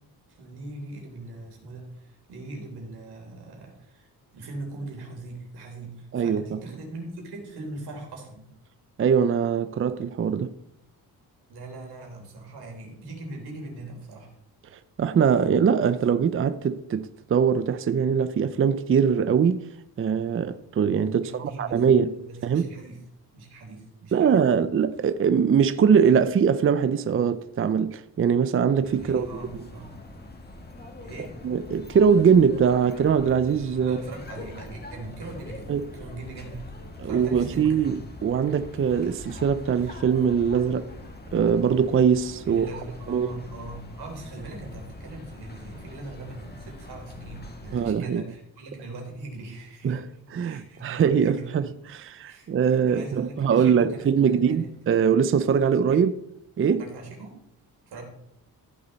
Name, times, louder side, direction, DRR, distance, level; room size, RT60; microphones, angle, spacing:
voice 1, 0.3-4.1 4.3-8.5 11.5-14.3 21.1-21.8 22.2-23.0 23.3-24.4 28.9-29.9 31.0-31.4 33.8-35.7 35.9-37.9 42.4-50.0 50.4-51.5 52.2-54.7 55.9-56.0 56.8-57.4 57.9-58.0, right 2 dB, 85° right, 3.6 m, -40 dB
voice 2, 6.1-6.6 9.0-10.6 15.0-19.7 20.0-22.2 22.4-22.7 24.1-29.3 31.4-34.0 35.7-35.9 37.0-40.9 41.3-43.3 47.7-48.2 49.8-50.1 50.3-51.6 51.9-56.1 56.6-56.8, right 7 dB, 35° right, 0.5 m, -22 dB
sound 1, 28.8-47.9, left 2 dB, 25° left, 1.8 m, -42 dB
14.5 x 6.6 x 4.1 m
cardioid pair, 110°, 38 cm